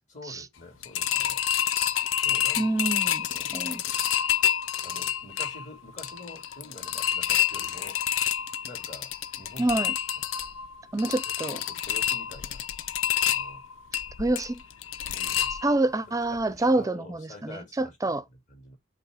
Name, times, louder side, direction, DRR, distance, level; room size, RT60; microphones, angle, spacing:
voice 1, 0.1-1.4 2.2-2.9 3.3-3.6 4.8-8.0 8.6-9.8 11.0-11.1 11.4-12.7 13.2-13.6 15.0-15.6 16.3-18.8, left 1 dB, 40° left, 2.4 m, -47 dB
sound 1, 0.8-16.0 16.4-16.5 16.8-16.9, left 10 dB, 85° left, 0.5 m, -28 dB
voice 2, 2.6-3.3 3.5-3.8 9.6-9.9 10.9-11.6 14.2-14.6 15.6-18.2, right 2 dB, 20° right, 0.5 m, -27 dB
7.7 x 3.0 x 4.8 m
head